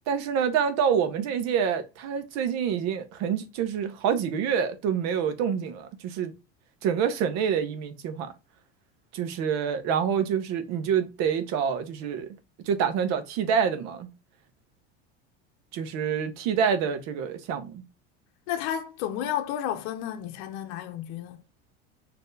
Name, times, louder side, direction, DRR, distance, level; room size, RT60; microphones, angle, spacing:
voice 1, 0.1-6.3 6.8-8.3 9.1-12.3 12.7-14.1 15.7-17.8, right 7 dB, 60° right, 1.0 m, -27 dB
voice 2, 18.5-21.4, left 10 dB, 65° left, 0.7 m, -32 dB
4.3 x 2.8 x 3.2 m
hypercardioid pair, 90°, 31 cm